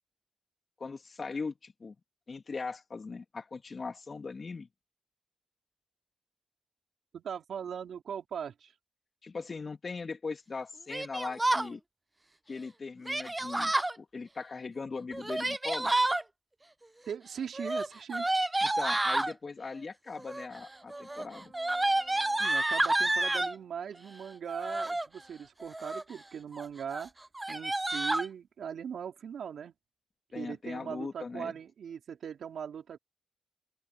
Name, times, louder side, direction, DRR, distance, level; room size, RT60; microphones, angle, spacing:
voice 1, 0.8-2.0 2.3-4.7 9.2-11.8 12.5-15.9 18.6-21.5 30.3-31.5, left 4 dB, 50° left, 1.7 m, -40 dB
voice 2, 7.1-8.7 17.1-18.3 22.4-27.1 27.5-29.7 30.3-33.0, right 8 dB, 80° right, 3.3 m, -40 dB
Yell, 10.9-11.7 13.1-13.9 15.1-16.2 17.5-19.3 20.2-20.6 20.9-23.6 24.5-25.1 25.6-26.1 26.5-26.7 26.9-27.0 27.4-28.3, right 2 dB, 20° right, 0.3 m, -29 dB
sound 1, 20.4-25.4, right 3 dB, 40° right, 4.2 m, -60 dB
open air
supercardioid pair, 45°, 0 cm